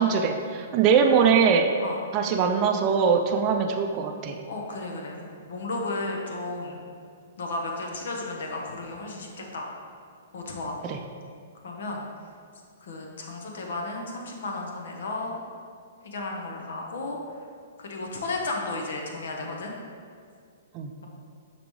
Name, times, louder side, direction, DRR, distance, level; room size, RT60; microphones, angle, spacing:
voice 1, 0.0-1.7 2.1-4.4 10.9-11.0 20.7-20.9, right 6 dB, 30° right, 3 dB, 0.4 m, -22 dB
voice 2, 4.5-6.8 7.4-9.7 10.3-10.8 11.6-12.0 12.8-15.4 16.0-17.2 17.8-19.7 21.0-21.1, left 2 dB, 70° left, 0 dB, 1.1 m, -33 dB
5.9 x 5.1 x 3.2 m, 2.2 s
hypercardioid pair, 145°, 0 cm